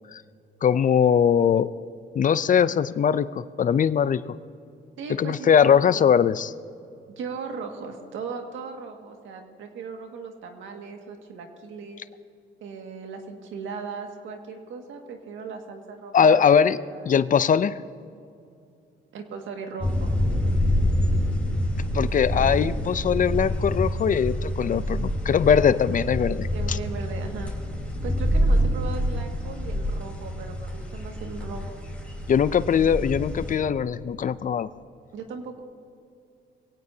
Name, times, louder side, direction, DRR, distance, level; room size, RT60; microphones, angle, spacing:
voice 1, 0.6-1.7 2.1-4.2 5.2-6.5 16.1-16.8 17.1-17.8 21.9-26.8 32.3-34.7, left 7 dB, 40° left, 16 dB, 0.5 m, -21 dB
voice 2, 5.0-5.7 7.2-12.0 12.6-16.5 16.9-17.1 19.1-20.1 26.5-27.5 28.0-31.7 35.1-35.6, right 5 dB, 75° right, 3 dB, 2.0 m, -37 dB
sound 1, 19.8-33.6, equal, 5° left, 4.0 m, -26 dB
22.5 x 17.0 x 2.8 m, 2.5 s
cardioid pair, 90°, 20 cm